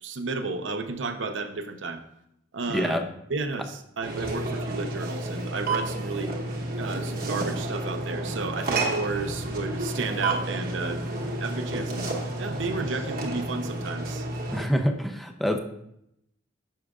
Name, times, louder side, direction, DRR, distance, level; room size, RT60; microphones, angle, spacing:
voice 1, 0.0-2.0 2.5-3.0 3.3-6.3 6.8-11.0 11.4-12.1 12.4-14.3, right 3 dB, 85° right, 8 dB, 0.7 m, -32 dB
voice 2, 2.7-3.1 14.5-15.6, equal, ahead, 4 dB, 0.6 m, -26 dB
sound 1, 4.0-14.7, right 2 dB, 55° right, 1.0 m, -31 dB
10.0 x 6.4 x 2.4 m, 0.77 s
head